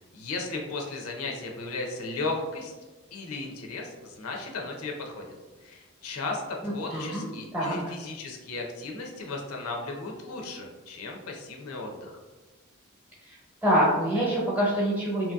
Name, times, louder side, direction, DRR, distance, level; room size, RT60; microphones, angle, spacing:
voice 1, 0.1-2.7 3.1-5.2 5.6-12.2, left 3 dB, 80° left, 1 dB, 0.5 m, -35 dB
voice 2, 6.6-7.3 7.5-7.8 13.6-15.3, equal, 10° right, -6 dB, 0.9 m, -25 dB
2.8 x 2.6 x 2.3 m, 1.2 s
head